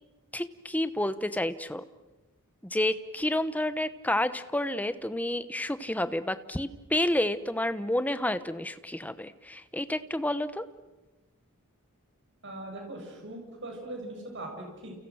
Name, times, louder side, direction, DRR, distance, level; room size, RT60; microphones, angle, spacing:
voice 1, 0.3-1.8 2.6-10.7, left 1 dB, 5° left, 12 dB, 0.9 m, -30 dB
voice 2, 12.4-14.9, right 1 dB, 55° right, 2 dB, 7.4 m, -40 dB
30.0 x 29.5 x 6.4 m, 1.2 s
head